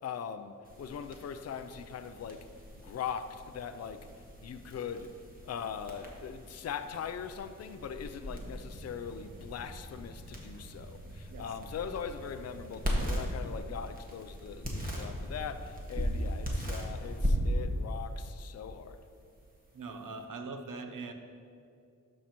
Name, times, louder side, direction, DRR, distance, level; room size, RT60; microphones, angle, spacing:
voice 1, 0.0-2.5 2.7-4.1 4.4-5.2 5.4-19.0, left 7 dB, 50° left, 0.4 m, -41 dB
sound 1, 0.6-20.2, equal, 25° right, 1.6 m, -38 dB
voice 2, 19.7-21.1, right 3 dB, 75° right, 0.8 m, -41 dB
12.5 x 5.5 x 3.0 m
cardioid pair, 60°, 32 cm